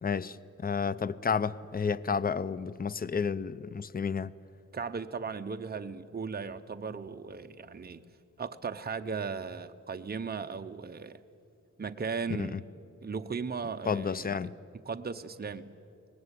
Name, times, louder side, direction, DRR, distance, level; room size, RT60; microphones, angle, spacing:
voice 1, 0.0-4.3 12.4-12.6 13.9-14.5, left 6 dB, 30° left, 0.6 m, -31 dB
voice 2, 4.7-8.0 8.4-11.2 11.8-12.6 13.0-14.4 14.8-15.7, right 5 dB, 30° right, 0.9 m, -37 dB
24.0 x 19.0 x 9.8 m
wide cardioid pair, 105°, 30 cm